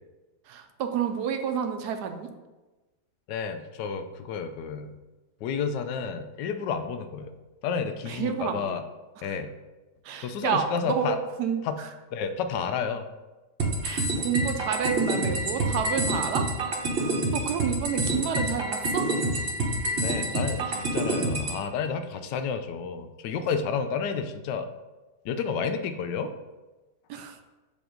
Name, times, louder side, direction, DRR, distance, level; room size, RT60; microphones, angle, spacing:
voice 1, 0.5-2.3 8.1-8.8 9.2-9.4 10.0-11.9 13.8-16.5 17.0-19.1 27.1-27.4, right 7 dB, 75° right, 7 dB, 1.1 m, -30 dB
voice 2, 3.3-4.9 5.4-7.4 7.6-8.8 9.2-9.5 10.2-11.2 11.6-11.8 12.1-13.1 20.0-24.7 25.2-26.3, left 6 dB, 85° left, 8 dB, 1.2 m, -31 dB
sound 1, 13.6-21.6, right 2 dB, 40° right, 1.0 m, -27 dB
6.9 x 3.1 x 5.0 m, 1.1 s
omnidirectional pair, 1.8 m